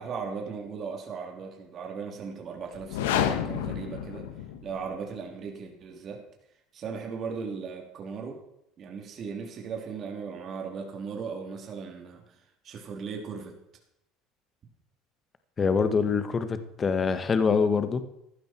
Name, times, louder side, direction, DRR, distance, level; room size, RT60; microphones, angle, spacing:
voice 1, 0.0-4.3 4.6-6.2 6.7-8.4 8.8-12.2 12.6-13.6, right 5 dB, 45° right, 1 dB, 3.2 m, -37 dB
sound 1, 2.7-4.9, left 10 dB, 90° left, 1.2 m, -30 dB
voice 2, 15.6-18.0, left 5 dB, 30° left, 10 dB, 1.4 m, -25 dB
15.0 x 12.0 x 4.5 m, 0.80 s
supercardioid pair, 95°, 0 cm